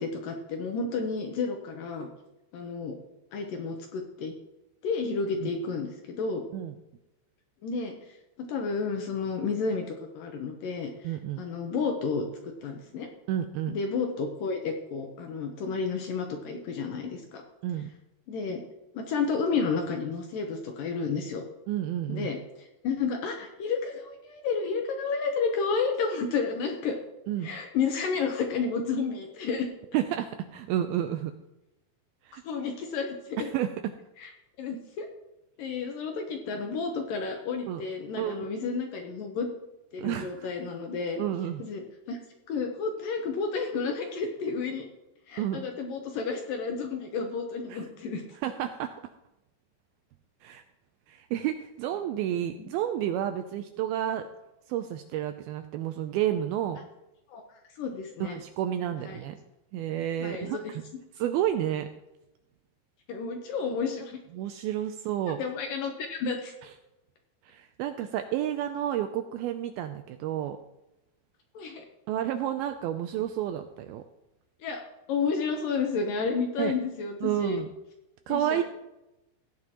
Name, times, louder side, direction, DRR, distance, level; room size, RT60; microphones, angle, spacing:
voice 1, 0.0-2.1 2.5-3.0 3.3-4.3 4.8-6.4 7.6-7.9 8.4-9.9 10.1-11.1 11.4-12.3 12.6-13.1 13.7-17.4 18.3-18.6 18.9-21.4 22.1-27.0 27.4-29.7 32.4-33.5 34.2-34.3 34.6-35.1 35.6-39.5 39.9-41.2 41.6-42.2 42.5-44.9 45.3-48.2 52.6-52.7 57.3-57.4 57.8-58.4 59.0-59.2 60.2-60.6 63.1-64.2 65.4-66.5 71.5-71.9 74.6-74.8 75.1-77.6 78.3-78.6, left 5 dB, 70° left, 3 dB, 2.2 m, -31 dB
voice 2, 11.0-11.4 13.3-13.8 17.6-17.9 21.7-22.3 27.3-27.5 29.9-31.3 32.2-32.4 33.4-33.9 37.7-37.8 38.2-38.5 40.0-40.5 41.2-41.6 45.4-45.6 47.7-47.8 48.4-48.9 50.4-50.6 51.1-54.3 54.7-56.8 58.2-59.4 59.7-60.8 61.2-61.9 64.3-65.4 67.4-70.6 72.1-74.0 76.6-76.7 77.2-77.7 78.3-78.6, right 11 dB, 85° right, 8 dB, 2.2 m, -30 dB
16.0 x 9.4 x 3.0 m, 0.94 s
omnidirectional pair, 4.8 m